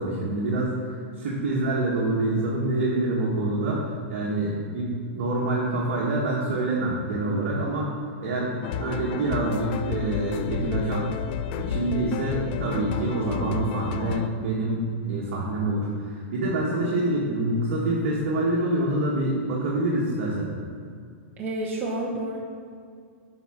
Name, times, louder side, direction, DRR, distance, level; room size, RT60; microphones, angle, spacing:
voice 1, 0.0-7.9 8.2-11.1 11.6-20.5, right 2 dB, 60° right, -5 dB, 1.7 m, -26 dB
sound 1, 8.6-14.3, left 8 dB, 55° left, 0.5 m, -32 dB
voice 2, 21.4-22.4, right 2 dB, 30° right, -4 dB, 1.4 m, -30 dB
8.2 x 5.1 x 5.9 m, 2.2 s
hypercardioid pair, 120°, 7 cm